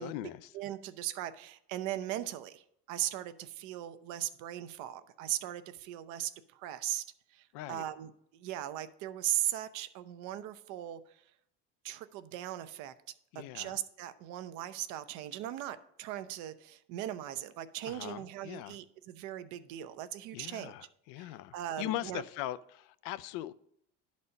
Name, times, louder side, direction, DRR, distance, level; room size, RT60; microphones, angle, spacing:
voice 1, 0.0-0.5 7.5-7.8 13.3-13.7 17.8-18.8 20.3-23.5, left 14 dB, 75° left, 0.5 m, -40 dB
voice 2, 0.5-2.6 2.9-7.0 7.3-11.0 11.8-12.9 13.3-20.7 21.2-22.2, right 13 dB, 70° right, 0.7 m, -38 dB
11.0 x 4.2 x 5.3 m
supercardioid pair, 110°, 31 cm